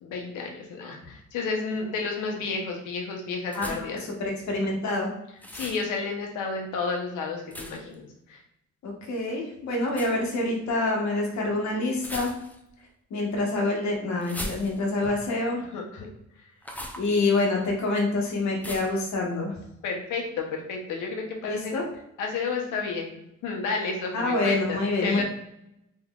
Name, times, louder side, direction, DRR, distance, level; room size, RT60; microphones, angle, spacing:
voice 1, 0.0-4.0 5.5-8.4 15.7-16.1 19.8-21.8 22.2-25.2, left 4 dB, 85° left, 1 dB, 0.9 m, -31 dB
sound 1, 3.5-4.0 5.4-5.8 7.5-7.9 9.9-10.2 12.0-12.7 14.2-15.0 16.6-17.1 18.6-19.0, left 1 dB, 5° left, 0.5 m, -38 dB
voice 2, 4.2-5.1 8.8-12.3 13.1-15.7 17.0-19.5 21.5-21.9 24.1-25.2, left 2 dB, 65° left, 0 dB, 1.1 m, -26 dB
3.7 x 3.2 x 2.3 m, 0.83 s
cardioid pair, 90°, 30 cm